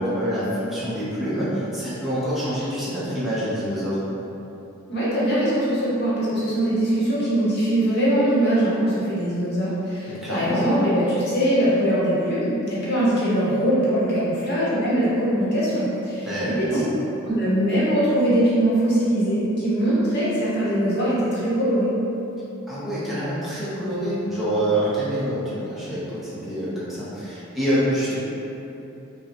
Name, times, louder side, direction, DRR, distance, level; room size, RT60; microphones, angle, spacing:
voice 1, 0.0-4.0 10.0-10.7 16.2-16.8 22.7-28.2, equal, ahead, -12 dB, 0.8 m, -26 dB
voice 2, 4.9-16.8 17.3-21.9, right 1 dB, 50° left, -8 dB, 1.0 m, -22 dB
5.2 x 2.2 x 2.9 m, 3.0 s
head